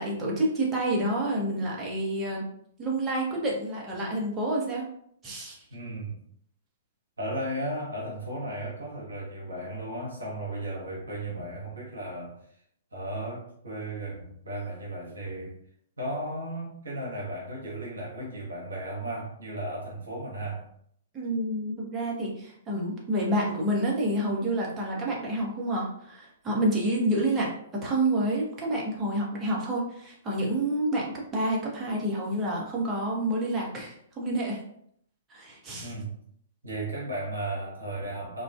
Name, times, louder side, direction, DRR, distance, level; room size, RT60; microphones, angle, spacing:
voice 1, 0.0-2.4 2.8-4.8 5.2-5.6 21.1-27.5 27.8-31.0 31.3-34.6 35.3-35.9, right 1 dB, 20° right, -3 dB, 0.7 m, -28 dB
voice 2, 5.7-6.2 7.2-12.4 12.9-15.6 16.0-20.7 35.8-36.2 36.6-38.4, right 1 dB, 70° right, -4 dB, 0.7 m, -35 dB
2.4 x 2.3 x 2.3 m, 0.68 s
figure-of-eight pair, 110°, 0 cm